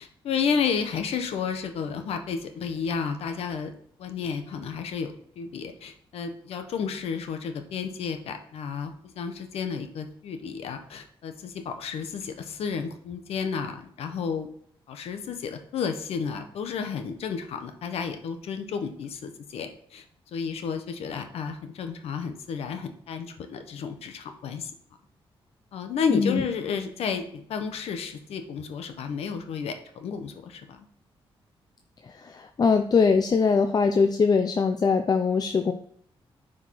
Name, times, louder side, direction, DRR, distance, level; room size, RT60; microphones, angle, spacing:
voice 1, 0.0-3.7 4.0-14.5 14.9-20.0 20.3-24.7 25.7-30.9, left 6 dB, 85° left, 7 dB, 1.2 m, -32 dB
voice 2, 26.1-26.4 32.1-35.7, left 5 dB, 40° left, 7 dB, 0.6 m, -22 dB
10.0 x 5.1 x 4.7 m, 0.63 s
cardioid pair, 95°, 10 cm